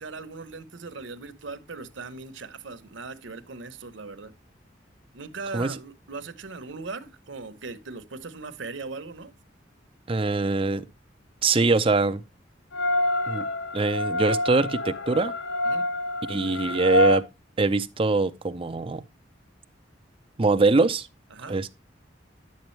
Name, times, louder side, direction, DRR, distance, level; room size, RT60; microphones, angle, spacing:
voice 1, 0.0-4.3 5.1-9.3 15.6-15.9 21.3-21.6, right 4 dB, 85° right, 1.0 m, -39 dB
voice 2, 10.1-10.9 11.4-12.2 13.3-15.3 16.3-17.3 17.6-19.0 20.4-21.1 21.5-21.7, right 3 dB, 30° right, 0.6 m, -23 dB
sound 1, 12.7-17.2, left 1 dB, 70° left, 0.8 m, -26 dB
10.5 x 7.0 x 3.2 m
head